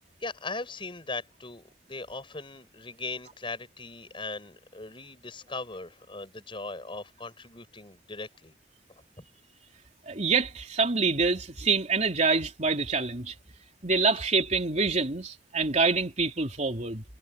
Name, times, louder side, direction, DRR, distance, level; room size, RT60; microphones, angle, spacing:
voice 1, 0.2-8.5 9.2-9.3, left 3 dB, 30° left, 6.3 m, -39 dB
voice 2, 10.1-13.3 13.8-17.0, right 4 dB, 40° right, 3.5 m, -26 dB
head